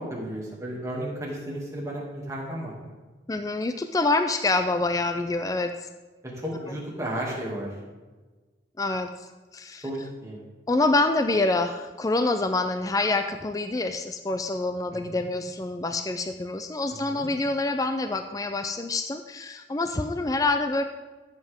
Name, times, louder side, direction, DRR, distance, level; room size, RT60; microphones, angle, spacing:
voice 1, 0.0-2.9 6.3-7.7 9.8-10.4 14.9-15.3 17.0-17.3, right 1 dB, 15° right, -4 dB, 2.4 m, -34 dB
voice 2, 3.3-5.9 8.8-9.8 10.7-20.8, left 2 dB, 20° left, 8 dB, 0.4 m, -26 dB
14.0 x 7.6 x 3.6 m, 1.3 s
head